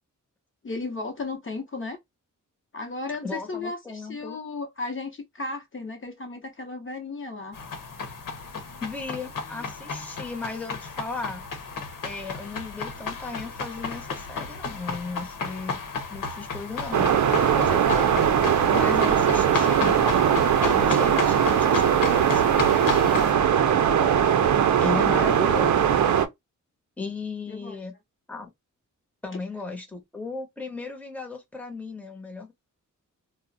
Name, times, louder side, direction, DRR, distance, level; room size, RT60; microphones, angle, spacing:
voice 1, 0.6-2.0 2.7-7.6 24.9-25.1 27.5-27.8, left 3 dB, 40° left, 0.7 m, -34 dB
voice 2, 3.2-4.4 8.8-11.4 12.0-15.8 16.1-17.1 17.6-18.2 18.7-20.0 20.6-23.3 24.8-26.0 27.0-27.9 28.3-28.5 29.2-32.5, left 3 dB, 5° left, 0.7 m, -35 dB
sound 1, 7.5-23.3, left 4 dB, 85° left, 0.8 m, -33 dB
sound 2, 16.9-26.3, right 8 dB, 65° right, 0.5 m, -20 dB
2.4 x 2.0 x 3.8 m
wide cardioid pair, 120°, 32 cm